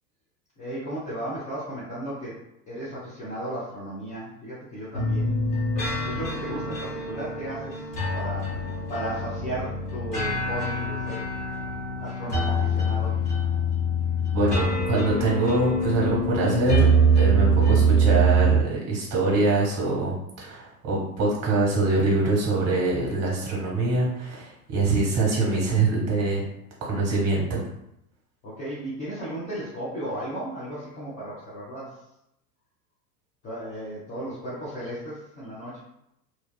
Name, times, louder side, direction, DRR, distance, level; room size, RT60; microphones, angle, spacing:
voice 1, 0.6-2.4 2.7-5.6 6.0-7.9 8.1-11.3 12.0-13.2 28.4-32.0 33.4-35.8, right 1 dB, 15° left, -10 dB, 0.4 m, -35 dB
sound 1, 4.9-18.6, right 2 dB, 80° left, 1.3 m, -24 dB
voice 2, 14.3-26.4 26.8-27.6, right 3 dB, 35° right, -3 dB, 1.0 m, -24 dB
2.6 x 2.2 x 2.2 m, 0.81 s
figure-of-eight pair, 90°, 47 cm